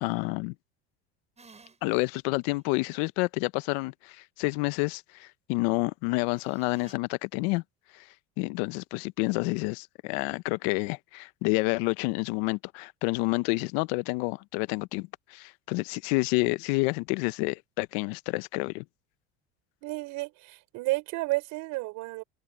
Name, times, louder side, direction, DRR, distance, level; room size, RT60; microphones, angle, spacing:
voice 1, 0.0-0.5 1.8-7.6 7.9-8.1 8.4-18.8, left 25 dB, 70° left, 1.0 m, -29 dB
sound 1, 1.4-2.1 2.5-2.6 6.3-6.9, right 4 dB, 20° right, 7.2 m, -55 dB
voice 2, 19.8-22.2, right 22 dB, 65° right, 5.8 m, -32 dB
open air
supercardioid pair, 95°, 32 cm